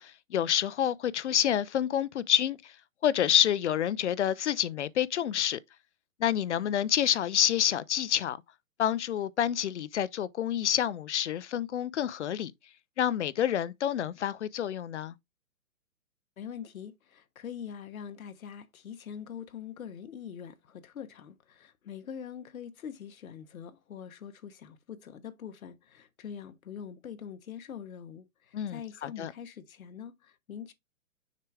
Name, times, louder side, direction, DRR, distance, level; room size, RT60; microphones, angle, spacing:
voice 1, 0.0-2.7 3.0-5.6 6.2-8.4 8.8-12.5 13.0-15.1 28.5-29.3, left 10 dB, 55° left, 0.5 m, -28 dB
voice 2, 16.4-30.7, left 8 dB, 75° left, 1.1 m, -43 dB
6.6 x 4.7 x 3.3 m
hypercardioid pair, 165°, 42 cm